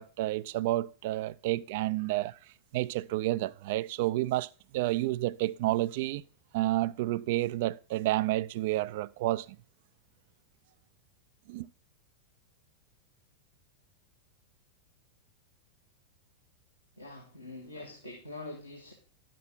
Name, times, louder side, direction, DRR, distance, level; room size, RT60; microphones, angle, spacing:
voice 1, 0.0-2.4 2.7-6.2 6.5-9.5 11.5-11.7, right 16 dB, 50° right, 0.4 m, -30 dB
voice 2, 17.0-18.9, left 2 dB, 85° left, 2.0 m, -44 dB
11.0 x 7.5 x 3.8 m
figure-of-eight pair, 90°, 0 cm